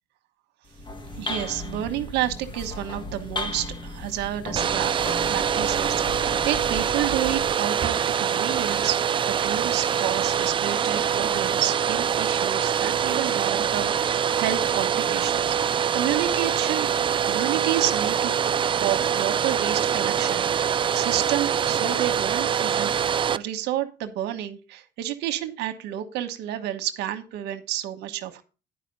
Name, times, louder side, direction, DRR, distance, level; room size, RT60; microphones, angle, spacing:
sound 1, 0.7-7.6, left 2 dB, 30° left, 1.5 m, -35 dB
voice 1, 1.2-4.9 5.3-16.9 17.2-18.5 18.8-22.9 23.3-28.4, right 12 dB, 85° right, 7 dB, 1.2 m, -30 dB
Domestic sounds home sounds, 4.5-23.4, right 8 dB, 30° right, 0.3 m, -24 dB
11.0 x 5.1 x 5.3 m, 0.34 s
cardioid pair, 110°, 17 cm